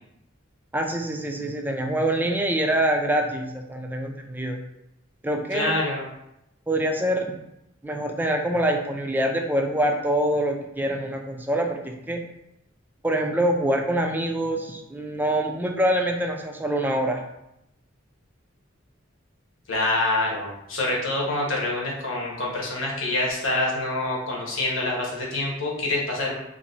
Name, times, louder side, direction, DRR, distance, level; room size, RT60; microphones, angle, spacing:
voice 1, 0.7-4.6 5.2-5.7 6.7-7.2 7.8-12.2 13.0-17.2, right 1 dB, 10° right, 3 dB, 0.4 m, -25 dB
voice 2, 5.5-6.1 19.7-26.3, left 2 dB, 70° left, -2 dB, 1.0 m, -26 dB
2.8 x 2.6 x 4.1 m, 0.85 s
head